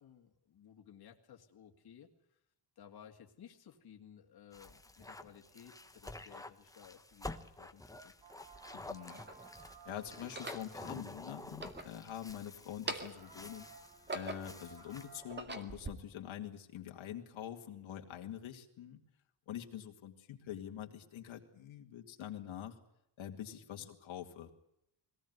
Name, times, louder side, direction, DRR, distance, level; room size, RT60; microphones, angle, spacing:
voice 1, 0.0-2.1 2.8-8.1 23.7-23.9, left 9 dB, 50° left, 3 dB, 2.3 m, -57 dB
sound 1, 4.5-15.1, left 2 dB, 5° left, 1.1 m, -50 dB
sound 2, 7.7-7.8 8.6-9.4 10.2-10.7 11.4-12.4 12.7-13.3 13.8-14.6 15.1-15.9, right 2 dB, 20° right, 2.2 m, -43 dB
sound 3, 8.2-11.2 12.2-12.3 12.7-12.8 13.0-15.4, right 5 dB, 60° right, 7.5 m, -58 dB
voice 2, 8.7-9.2 9.5-13.7 14.1-19.0 19.5-22.8 23.2-24.5, left 10 dB, 80° left, 3 dB, 2.4 m, -45 dB
22.0 x 18.0 x 9.4 m, 0.81 s
wide cardioid pair, 150°, 47 cm